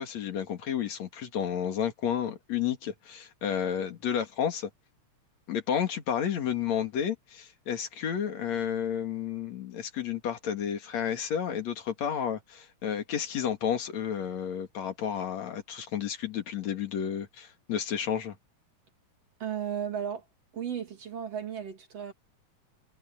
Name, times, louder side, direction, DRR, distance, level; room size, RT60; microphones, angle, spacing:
voice 1, 0.0-4.7 5.5-18.3, left 8 dB, 65° left, 3.2 m, -31 dB
voice 2, 19.4-20.2 20.5-22.1, right 8 dB, 55° right, 4.0 m, -34 dB
omnidirectional pair, 3.5 m